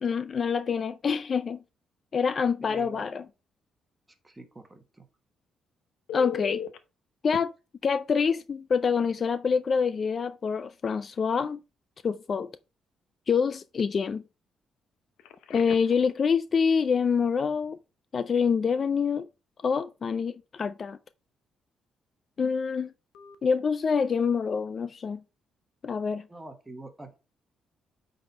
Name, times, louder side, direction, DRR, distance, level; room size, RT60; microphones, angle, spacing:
voice 1, 0.0-1.6 2.1-3.2 6.1-6.6 7.2-7.5 7.8-11.6 12.0-12.5 13.3-14.2 15.5-17.8 18.1-19.3 19.6-21.0 22.4-22.9 23.4-25.2 25.8-26.2, left 6 dB, 40° left, 0.4 m, -26 dB
voice 2, 2.6-3.1 4.2-5.0 26.3-27.2, right 2 dB, 15° right, 1.4 m, -45 dB
Telephone, 6.1-6.8 7.3-7.4 9.2-9.3 9.7-9.9 15.2-16.0 23.1-23.3, left 9 dB, 90° left, 0.8 m, -37 dB
8.7 x 4.1 x 4.1 m
cardioid pair, 125°, 0 cm